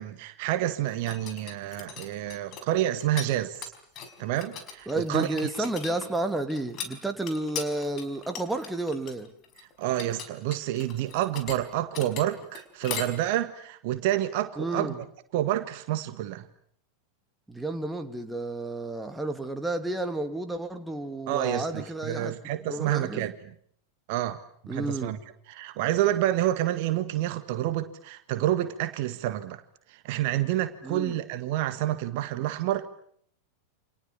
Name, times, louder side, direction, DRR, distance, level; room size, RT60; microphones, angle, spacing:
voice 1, 0.0-3.7 4.2-5.3 9.6-14.9 15.3-16.5 21.3-23.3 24.1-24.4 24.6-25.2 25.5-29.6 29.9-32.9, right 13 dB, 50° right, 1.8 m, -28 dB
sound 1, 0.9-3.3 3.5-13.1, left 7 dB, 35° left, 5.2 m, -39 dB
voice 2, 4.9-9.3 14.6-15.0 17.5-22.4 22.7-23.3 24.7-25.1 30.8-31.2, right 2 dB, 5° right, 2.8 m, -31 dB
29.5 x 27.5 x 7.2 m
figure-of-eight pair, 90°, 0 cm